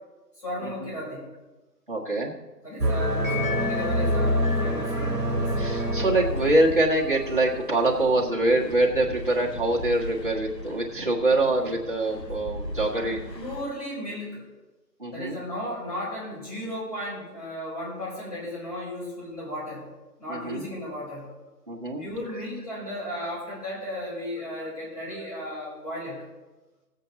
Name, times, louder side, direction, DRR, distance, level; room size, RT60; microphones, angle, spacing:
voice 1, 0.4-1.2 2.6-5.7 12.9-14.4 15.1-19.8 20.2-21.3 22.0-26.2, left 1 dB, 25° left, -7 dB, 4.5 m, -35 dB
voice 2, 1.9-2.3 5.6-13.2 15.0-15.3 20.3-20.6 21.7-22.0, right 2 dB, 30° right, -4 dB, 1.5 m, -24 dB
sound 1, 2.8-6.9, equal, 75° right, 1.5 m, -26 dB
sound 2, 3.0-8.2, left 5 dB, 50° left, 2.3 m, -35 dB
sound 3, 5.4-13.6, equal, 80° left, 1.6 m, -37 dB
16.5 x 8.2 x 4.0 m, 1.1 s
figure-of-eight pair, 175°, 49 cm